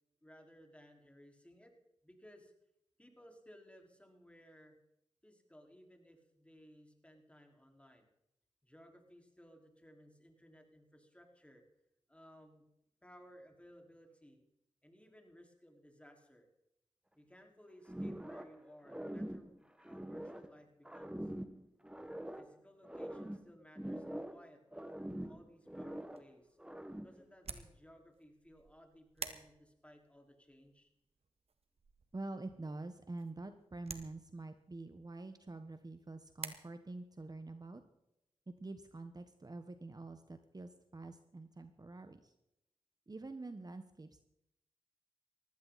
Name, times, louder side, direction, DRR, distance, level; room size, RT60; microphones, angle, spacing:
voice 1, 0.2-1.7 2.0-2.5 3.0-4.8 5.2-8.1 8.6-11.6 12.1-12.7 13.0-14.4 14.8-16.5 17.2-21.3 22.4-24.8 25.2-26.6 27.0-30.9, equal, 10° left, 2 dB, 4.8 m, -60 dB
sound 1, 17.9-18.6 18.8-20.5 20.8-22.5 22.8-24.5 24.7-26.3 26.6-27.2, right 1 dB, 10° right, 1.7 m, -44 dB
sound 2, 26.0-36.5, right 4 dB, 60° right, 1.8 m, -52 dB
voice 2, 32.1-37.8 38.5-42.3 43.1-44.2, right 2 dB, 35° right, 9 dB, 1.3 m, -47 dB
18.5 x 15.5 x 4.2 m, 0.83 s
cardioid pair, 45°, 11 cm